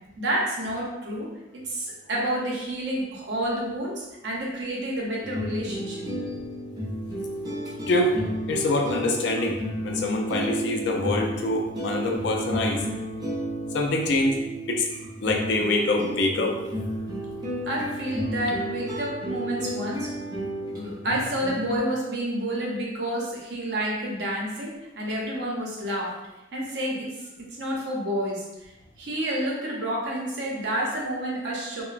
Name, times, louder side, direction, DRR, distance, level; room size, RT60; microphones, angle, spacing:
voice 1, 0.2-1.3 1.5-6.1 17.7-20.1 20.7-26.1 26.5-28.7 29.0-31.8, right 1 dB, 70° right, -3 dB, 0.7 m, -29 dB
sound 1, 5.2-21.8, equal, 20° right, 0.6 m, -32 dB
voice 2, 7.9-8.2 8.5-12.8 13.7-14.9 15.2-16.6, left 2 dB, 75° left, 2 dB, 0.4 m, -25 dB
2.9 x 2.1 x 2.4 m, 0.99 s
head